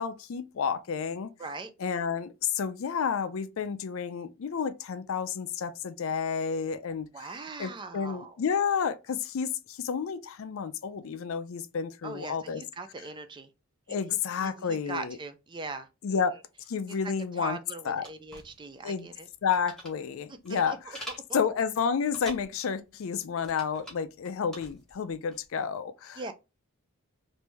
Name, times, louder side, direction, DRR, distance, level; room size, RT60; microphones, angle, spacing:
voice 1, 0.0-1.3 1.8-7.3 7.6-12.6 13.9-15.2 16.0-16.3 16.7-17.6 17.9-18.0 18.8-19.1 19.4-20.8 21.3-26.3, left 6 dB, 65° left, 0.4 m, -30 dB
voice 2, 1.4-1.7 7.1-8.4 12.0-13.5 13.9-16.2 16.9-17.0 17.4-19.3 20.5-21.0 26.2-26.3, right 3 dB, 20° right, 0.3 m, -41 dB
sound 1, 18.0-25.4, right 1 dB, ahead, 0.9 m, -47 dB
3.0 x 2.6 x 3.3 m
head